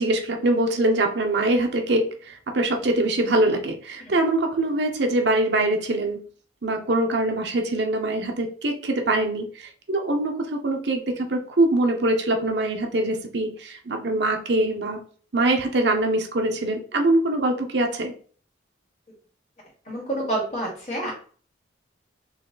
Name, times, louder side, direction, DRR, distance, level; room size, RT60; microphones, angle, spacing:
voice 1, 0.0-6.2 6.6-15.0 15.3-18.1, right 2 dB, 65° right, 3 dB, 0.8 m, -23 dB
voice 2, 19.9-21.1, right 2 dB, 35° left, -4 dB, 2.3 m, -28 dB
4.1 x 3.2 x 3.9 m, 0.43 s
head